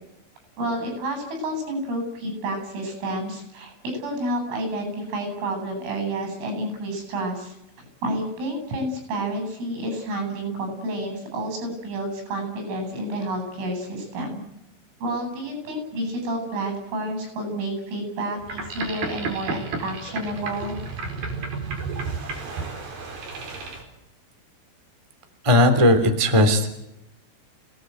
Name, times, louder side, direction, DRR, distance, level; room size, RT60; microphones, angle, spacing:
voice 1, 0.6-14.4 15.0-20.8, right 1 dB, 90° right, 5 dB, 11.0 m, -30 dB
Boat Water vehicle, 18.4-23.8, right 4 dB, 50° right, 6.0 m, -32 dB
voice 2, 25.4-26.7, left 1 dB, 10° right, 6 dB, 2.0 m, -17 dB
29.5 x 18.5 x 8.0 m, 0.86 s
omnidirectional pair, 5.6 m